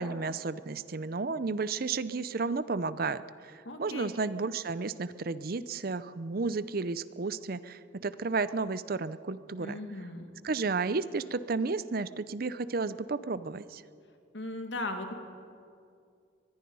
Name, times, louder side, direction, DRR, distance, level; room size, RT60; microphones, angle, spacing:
voice 1, 0.0-9.8 10.4-13.8, right 4 dB, 50° right, 15 dB, 0.6 m, -32 dB
voice 2, 3.6-4.1 9.6-10.3 14.3-15.1, left 2 dB, 70° left, 5 dB, 2.2 m, -37 dB
23.5 x 21.5 x 5.5 m, 2.4 s
head